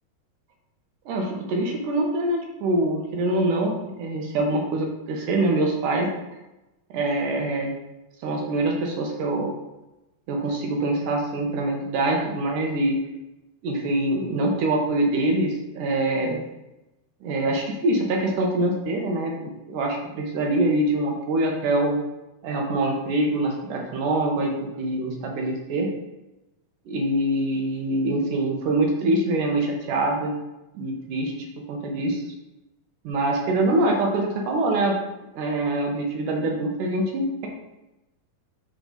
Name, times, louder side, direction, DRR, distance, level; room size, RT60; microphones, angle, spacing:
voice 1, 1.1-6.1 6.9-7.8 8.2-9.5 10.3-13.0 13.6-16.4 17.2-22.0 22.4-25.9 26.9-30.3 30.8-31.3 31.7-32.2 33.0-35.0 35.3-37.5, right 1 dB, 70° right, 1 dB, 2.1 m, -24 dB
9.8 x 3.9 x 3.9 m, 0.98 s
omnidirectional pair, 4.7 m